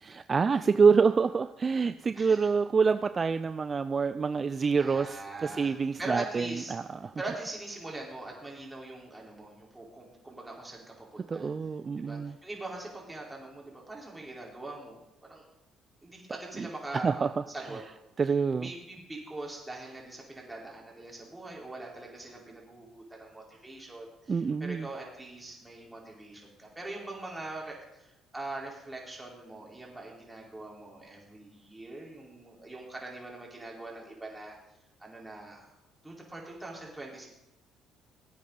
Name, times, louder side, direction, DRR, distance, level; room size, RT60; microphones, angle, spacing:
voice 1, 0.0-7.1 11.3-12.3 16.6-16.7 17.0-17.3 18.2-18.7 24.3-24.9, right 5 dB, 40° right, 12 dB, 0.5 m, -26 dB
voice 2, 2.1-2.5 4.8-6.7 7.2-11.5 12.0-15.5 16.0-17.8 18.5-34.6 35.0-35.7 36.0-37.3, right 2 dB, 15° right, -2 dB, 4.5 m, -42 dB
17.5 x 8.4 x 4.1 m, 0.90 s
hypercardioid pair, 60°, 0 cm